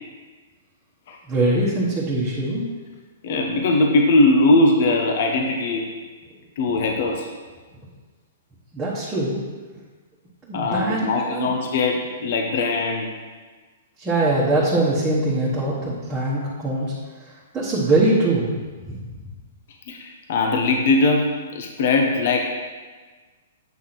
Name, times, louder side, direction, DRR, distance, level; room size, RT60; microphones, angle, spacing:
voice 1, 1.3-2.7 8.7-9.4 10.5-11.5 14.0-16.9 17.5-18.5 18.9-19.0, right 2 dB, 15° right, -8 dB, 1.3 m, -22 dB
voice 2, 3.2-5.9 6.6-7.3 10.5-13.1 19.9-22.5, left 2 dB, 55° left, 2 dB, 1.0 m, -20 dB
8.3 x 3.6 x 6.0 m, 1.4 s
hypercardioid pair, 145°, 0 cm